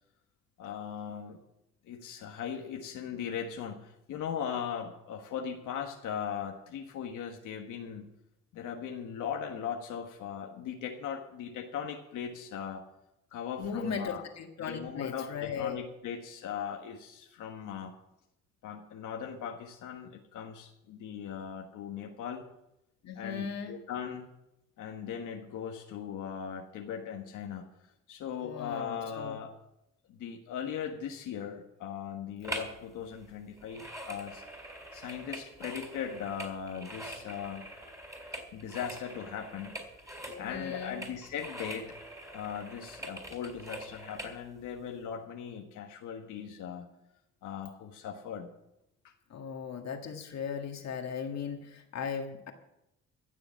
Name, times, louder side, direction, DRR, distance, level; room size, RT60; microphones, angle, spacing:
voice 1, 0.6-1.4 1.8-8.1 8.5-12.8 13.3-14.2 14.7-17.9 18.6-22.4 23.2-24.3 24.8-27.7 28.1-29.5 30.1-34.4 34.9-37.7 38.5-39.8 40.4-41.9 42.3-46.9 47.4-48.5 49.0-49.1, left 8 dB, 85° left, 2 dB, 1.4 m, -39 dB
voice 2, 13.6-15.8 23.0-23.8 28.4-29.4 40.3-41.0 49.3-52.5, left 6 dB, 60° left, 4 dB, 1.8 m, -37 dB
sound 1, 32.4-32.8 33.1-44.4 44.9-45.0, right 1 dB, 10° right, 3.7 m, -44 dB
15.5 x 7.0 x 7.3 m, 0.85 s
cardioid pair, 90°, 30 cm